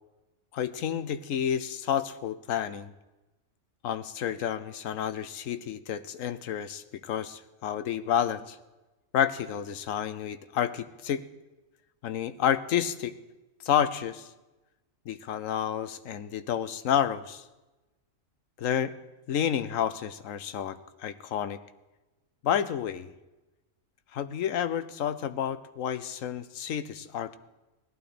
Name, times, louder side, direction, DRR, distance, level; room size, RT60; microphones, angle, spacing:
voice 1, 0.5-2.9 3.8-8.6 9.1-11.2 12.0-13.2 13.6-14.3 15.1-17.4 18.6-18.9 19.3-21.6 22.4-23.1 24.1-27.4, left 9 dB, 75° left, 13 dB, 1.1 m, -30 dB
17.0 x 12.0 x 4.2 m, 1.1 s
omnidirectional pair, 1.4 m